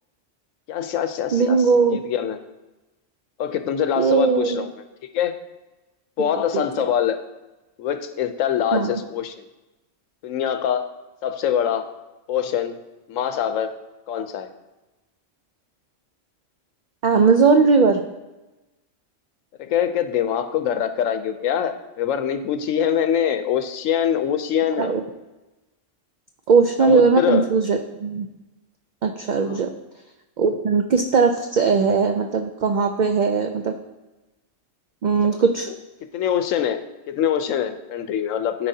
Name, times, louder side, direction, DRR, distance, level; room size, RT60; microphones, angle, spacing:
voice 1, 0.7-1.6 1.9-2.4 3.4-4.7 5.1-5.4 6.2-7.2 7.8-9.3 10.2-10.9 11.2-11.9 12.3-12.8 13.1-13.7 14.1-14.5 19.6-24.9 26.8-27.5 29.4-29.6 35.3-35.4 35.7-35.8 36.1-36.8 37.1-38.7, left 9 dB, 85° left, 8 dB, 1.0 m, -24 dB
voice 2, 1.3-2.0 4.0-4.6 6.2-6.9 8.7-8.9 17.0-18.0 24.8-25.0 26.5-28.3 29.0-29.7 30.4-33.8 35.0-35.7, right 5 dB, 70° right, 5 dB, 0.4 m, -19 dB
13.0 x 4.7 x 2.7 m, 1.1 s
omnidirectional pair, 1.3 m